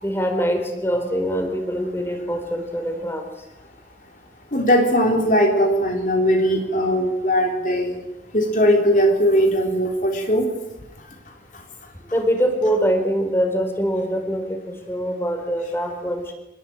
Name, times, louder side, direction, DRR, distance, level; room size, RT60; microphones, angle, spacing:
voice 1, 0.0-3.2 12.1-16.3, equal, 15° left, 6 dB, 4.2 m, -23 dB
voice 2, 4.5-8.0 8.3-10.5 11.3-11.6, equal, 45° left, 2 dB, 3.5 m, -19 dB
26.0 x 20.5 x 8.8 m, 0.98 s
head